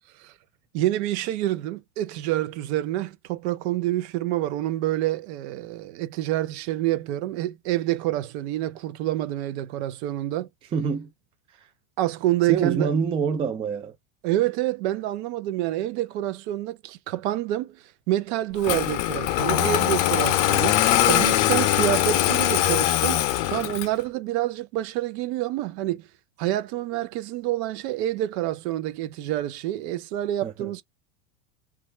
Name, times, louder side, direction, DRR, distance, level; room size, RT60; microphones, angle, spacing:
voice 1, 0.7-10.5 12.0-12.9 14.2-26.1 26.4-30.8, right 14 dB, 60° right, 0.7 m, -27 dB
voice 2, 10.7-11.1 11.6-11.7 12.5-13.9 30.4-30.7, right 6 dB, 15° right, 0.4 m, -26 dB
Engine starting, 18.6-24.0, left 13 dB, 60° left, 0.7 m, -22 dB
3.2 x 2.4 x 3.2 m
supercardioid pair, 135°, 38 cm